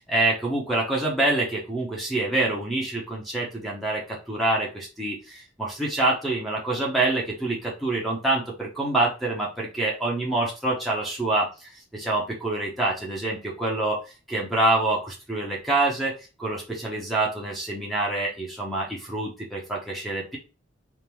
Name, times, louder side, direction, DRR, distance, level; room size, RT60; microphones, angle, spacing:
voice 1, 0.0-14.0 14.3-16.1 16.4-20.4, right 2 dB, ahead, -2 dB, 0.9 m, -26 dB
3.6 x 2.6 x 4.5 m, 0.32 s
head